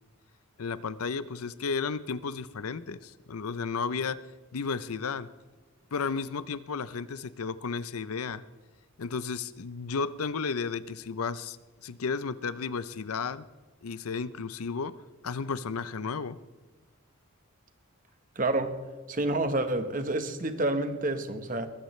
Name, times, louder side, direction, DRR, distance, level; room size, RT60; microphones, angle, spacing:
voice 1, 0.6-4.2 4.5-5.3 5.9-8.4 9.0-11.6 11.8-13.5 13.8-14.9 15.2-16.4, left 5 dB, 85° left, 15 dB, 0.6 m, -33 dB
voice 2, 18.4-18.7 19.1-21.7, right 2 dB, 40° right, 8 dB, 1.1 m, -28 dB
21.5 x 16.0 x 3.2 m, 1.3 s
head